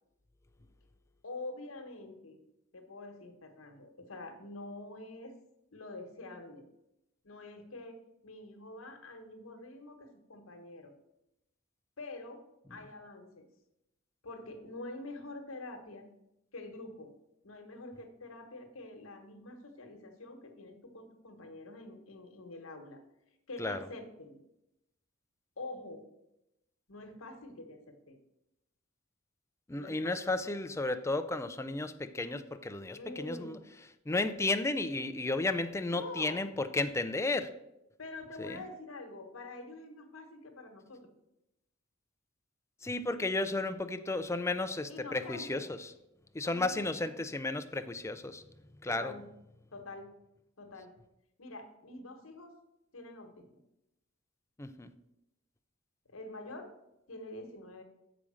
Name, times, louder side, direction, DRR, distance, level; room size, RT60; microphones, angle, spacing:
voice 1, 1.2-2.4 2.7-5.3 5.7-6.6 7.2-10.9 12.0-12.4 12.7-13.4 14.2-16.1 16.5-17.1 17.4-23.0 23.5-24.4 25.6-26.0 26.9-28.2 29.7-30.4 32.9-33.6 35.9-36.4 38.0-41.1 44.9-45.7 46.4-47.3 48.9-49.2 49.7-50.1 50.6-50.9 51.4-52.5 52.9-53.5 56.1-56.7 57.1-57.8, left 2 dB, 85° left, 5 dB, 1.3 m, -46 dB
voice 2, 29.7-33.6 34.1-37.5 38.4-38.6 42.8-45.9 46.3-48.4 48.8-49.1 54.6-54.9, left 2 dB, 15° left, 9 dB, 0.4 m, -33 dB
7.1 x 5.0 x 6.2 m, 0.88 s
head